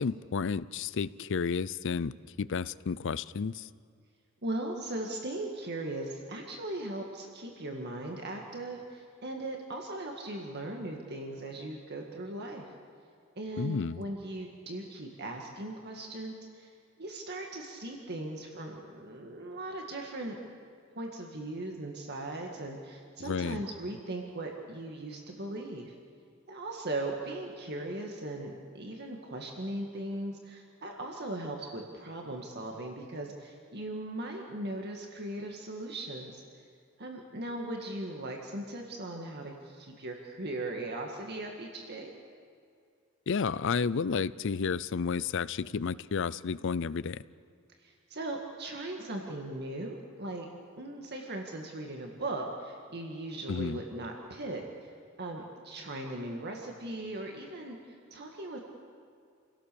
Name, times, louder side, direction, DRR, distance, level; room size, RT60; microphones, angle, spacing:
voice 1, 0.0-3.7 13.6-14.0 23.3-23.6 43.3-47.2 53.5-53.8, left 5 dB, 65° left, 18 dB, 0.5 m, -31 dB
voice 2, 4.4-12.7 13.4-16.7 17.0-20.4 21.0-25.9 26.5-36.4 37.0-42.1 47.8-50.5 50.8-54.6 55.2-58.6, right 1 dB, 55° right, 1 dB, 1.9 m, -38 dB
28.5 x 17.0 x 6.9 m, 2.3 s
head